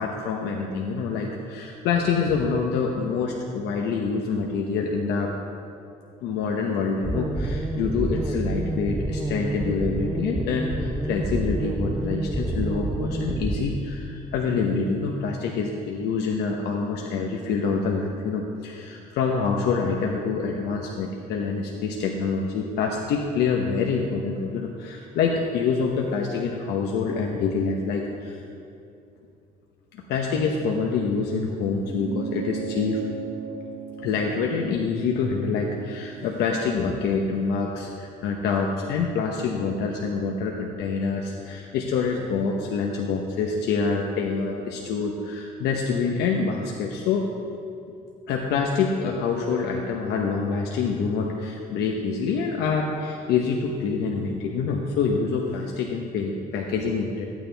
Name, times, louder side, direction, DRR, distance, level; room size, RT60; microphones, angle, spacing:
voice 1, 0.0-5.3 6.2-28.4 29.9-33.0 34.0-47.3 48.3-57.3, left 5 dB, 80° left, 1 dB, 0.9 m, -26 dB
sound 1, 7.0-13.6, right 1 dB, 15° right, 0.6 m, -28 dB
sound 2, 31.8-36.6, right 7 dB, 60° right, 2.1 m, -36 dB
14.0 x 9.2 x 3.4 m, 2.6 s
cardioid pair, 110°, 17 cm